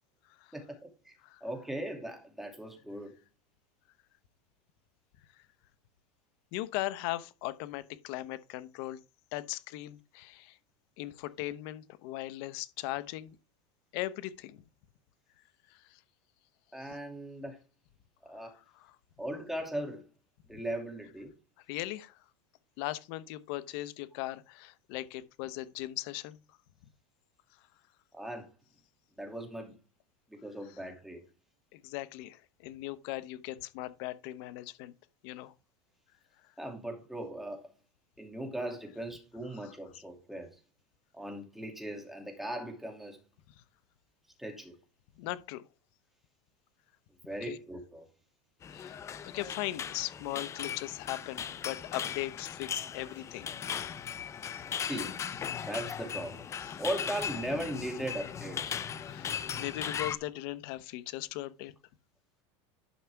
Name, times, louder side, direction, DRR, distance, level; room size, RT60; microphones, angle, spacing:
voice 1, 0.5-3.1 16.7-17.6 18.2-18.5 19.2-20.0 20.5-21.3 28.1-28.5 29.2-29.7 30.3-31.2 36.6-37.6 38.2-40.6 41.1-43.2 44.4-44.7 47.2-48.0 54.9-55.2 55.7-56.4 56.8-58.8, right 1 dB, ahead, 2.5 m, -38 dB
voice 2, 6.5-9.0 9.3-10.6 11.0-13.4 13.9-14.6 15.7-16.0 16.8-17.0 18.4-19.0 21.7-22.2 22.8-26.4 30.7-30.8 31.7-34.9 35.2-35.5 39.6-40.0 45.2-45.6 47.4-47.6 48.7-53.5 54.2-54.4 56.6-56.8 59.0-59.3 59.6-61.7, left 16 dB, 55° left, 0.9 m, -39 dB
sound 1, 48.6-60.2, left 8 dB, 20° left, 0.5 m, -38 dB
11.5 x 5.8 x 3.5 m
supercardioid pair, 150°, 15 cm